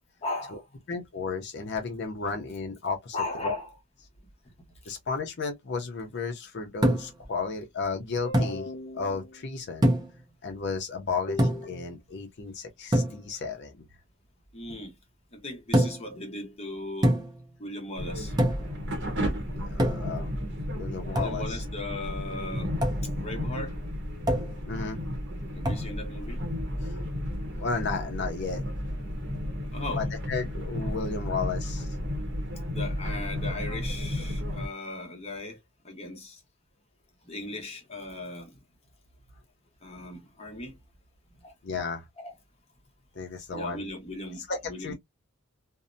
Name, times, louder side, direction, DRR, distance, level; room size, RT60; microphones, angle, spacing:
voice 1, 0.2-0.8 3.1-3.7 4.8-4.9 8.4-8.5 14.5-14.9 15.3-17.2 17.6-18.4 21.1-22.7 23.2-23.8 25.5-26.4 29.7-30.1 32.7-35.6 35.8-36.4 37.2-38.6 39.8-40.8 41.4-41.5 42.2-42.3 43.5-44.9, left 2 dB, 30° left, 0.9 m, -37 dB
voice 2, 0.9-3.2 3.4-3.5 4.9-9.9 10.4-13.9 19.5-20.3 20.7-21.6 24.7-25.0 26.8-27.0 27.6-28.6 30.0-31.9 41.6-42.0 43.1-43.8 44.4-44.9, left 4 dB, 50° left, 0.5 m, -33 dB
sound 1, 6.8-7.2 8.3-8.6 9.8-10.2 11.4-11.8 12.9-13.2 15.7-16.1 17.0-17.4 18.4-18.7 19.8-20.2 21.1-21.4 22.8-23.0 24.3-24.6 25.6-25.9, equal, 20° right, 0.5 m, -25 dB
sound 2, 18.0-34.7, equal, 55° right, 0.8 m, -33 dB
2.7 x 2.0 x 2.5 m
head